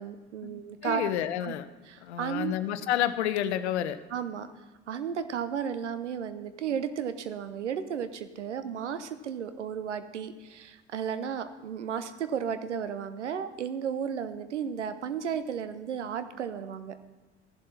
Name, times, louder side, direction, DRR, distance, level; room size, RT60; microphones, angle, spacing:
voice 1, 0.0-1.0 1.4-1.5 1.9-2.5 4.1-4.5 4.9-16.9, right 8 dB, 80° right, 11 dB, 0.8 m, -34 dB
voice 2, 0.8-1.7 2.0-4.0, left 11 dB, 70° left, 12 dB, 0.8 m, -29 dB
14.5 x 11.0 x 4.3 m, 1.2 s
figure-of-eight pair, 60°, 35 cm